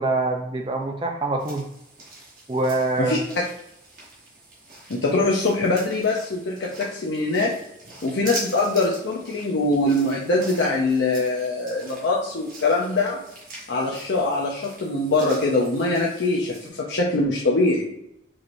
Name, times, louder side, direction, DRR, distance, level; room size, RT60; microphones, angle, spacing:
voice 1, 0.0-1.7 2.5-3.2, right 2 dB, 25° right, 3 dB, 0.4 m, -24 dB
sound 1, 1.4-16.7, right 2 dB, 45° right, 1.2 m, -42 dB
voice 2, 4.9-7.5 8.0-13.2 13.7-17.9, left 2 dB, 75° left, -3 dB, 0.6 m, -23 dB
4.7 x 2.9 x 2.6 m, 0.80 s
head